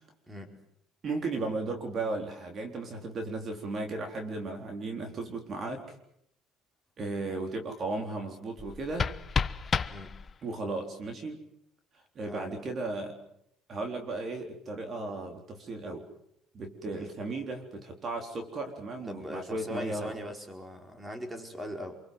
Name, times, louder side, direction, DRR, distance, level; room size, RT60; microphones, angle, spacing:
voice 1, 1.0-6.0 7.0-9.1 10.4-11.4 12.2-13.2 13.7-16.1 16.5-20.1, right 3 dB, 40° right, 3 dB, 3.9 m, -35 dB
sound 1, 8.6-10.6, left 5 dB, 30° left, 1.0 m, -32 dB
voice 2, 12.2-12.6 16.9-17.1 19.1-22.0, equal, 15° right, 4 dB, 4.6 m, -40 dB
27.0 x 24.0 x 7.8 m, 0.77 s
cardioid pair, 115°, 0 cm